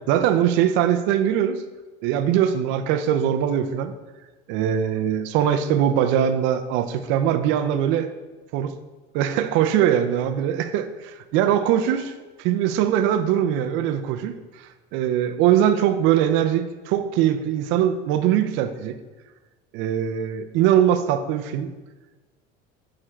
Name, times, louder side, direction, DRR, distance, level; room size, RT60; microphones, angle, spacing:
voice 1, 0.1-1.6 2.0-3.9 4.5-8.1 8.5-8.7 9.1-12.1 12.4-14.3 14.9-19.0 19.7-21.7, right 10 dB, 65° right, 9 dB, 0.5 m, -21 dB
6.4 x 3.7 x 4.4 m, 1.2 s
supercardioid pair, 125°, 21 cm